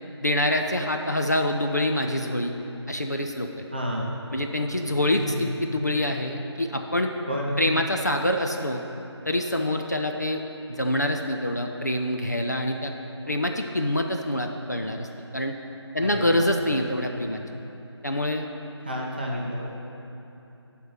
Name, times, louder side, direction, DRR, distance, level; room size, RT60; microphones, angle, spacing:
voice 1, 0.2-2.5 2.9-3.5 4.3-7.1 7.6-8.8 9.3-10.4 10.7-12.9 13.3-15.1 15.3-15.5 15.9-17.4 18.0-18.5, left 1 dB, 40° left, 3 dB, 0.4 m, -25 dB
voice 2, 3.7-4.1 5.1-5.5 7.3-7.6 16.0-16.5 18.8-19.8, equal, 20° right, -3 dB, 0.6 m, -30 dB
10.5 x 3.6 x 5.8 m, 2.9 s
figure-of-eight pair, 165°, 15 cm